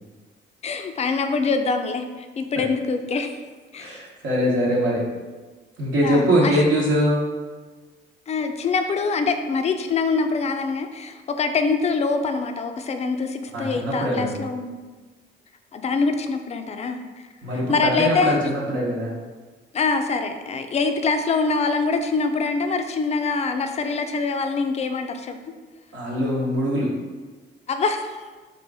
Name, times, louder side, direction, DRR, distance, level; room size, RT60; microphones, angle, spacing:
voice 1, 0.6-3.4 3.7-3.9 6.0-6.6 8.3-14.8 15.7-17.0 17.5-18.4 19.7-25.4 27.7-28.2, left 4 dB, 35° left, 7 dB, 0.4 m, -24 dB
voice 2, 3.8-5.0 5.8-7.2 13.5-14.4 17.4-19.1 25.9-27.0, equal, 75° right, -6 dB, 0.9 m, -22 dB
4.3 x 2.5 x 3.4 m, 1.3 s
cardioid pair, 90°, 20 cm